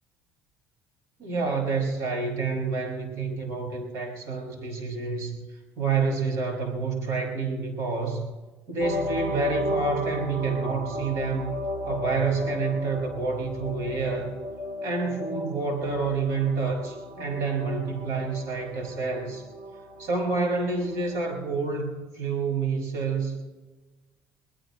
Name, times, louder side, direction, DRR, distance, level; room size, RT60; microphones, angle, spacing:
voice 1, 1.2-5.4 5.8-8.2 8.7-11.5 11.8-14.3 14.8-19.5 20.0-23.4, right 4 dB, 65° right, 2 dB, 6.0 m, -28 dB
sound 1, 8.8-21.3, equal, 40° right, 3.2 m, -35 dB
22.5 x 19.5 x 3.1 m, 1.2 s
supercardioid pair, 90°, 5 cm